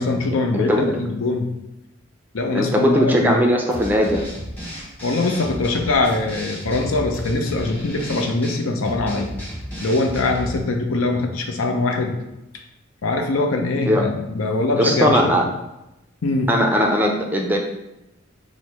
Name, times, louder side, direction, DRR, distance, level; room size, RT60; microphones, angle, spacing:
voice 1, 0.0-1.5 2.3-3.4 5.0-9.3 9.8-12.2 12.5-12.6 13.0-15.4 16.2-16.7, left 2 dB, 80° left, 4 dB, 0.6 m, -22 dB
voice 2, 0.5-0.9 2.5-4.3 13.9-14.0 14.8-15.4 16.5-17.6, equal, 10° right, 1 dB, 0.4 m, -19 dB
sound 1, 3.7-10.6, equal, 10° left, 0.9 m, -33 dB
4.4 x 2.1 x 4.6 m, 0.94 s
head